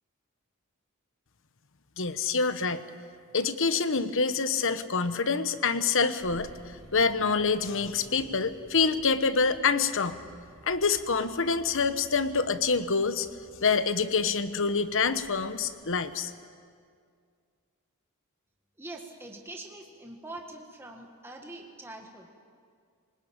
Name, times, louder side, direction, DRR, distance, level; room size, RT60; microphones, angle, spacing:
voice 1, 2.0-2.8 3.3-6.5 6.9-10.2 10.6-13.3 13.6-16.3, left 5 dB, 60° left, 11 dB, 1.1 m, -26 dB
sound 1, 6.2-16.1, equal, 75° right, 5.6 m, -54 dB
voice 2, 18.8-22.4, right 2 dB, 10° right, 2 dB, 1.7 m, -44 dB
25.0 x 20.0 x 8.7 m, 2.2 s
head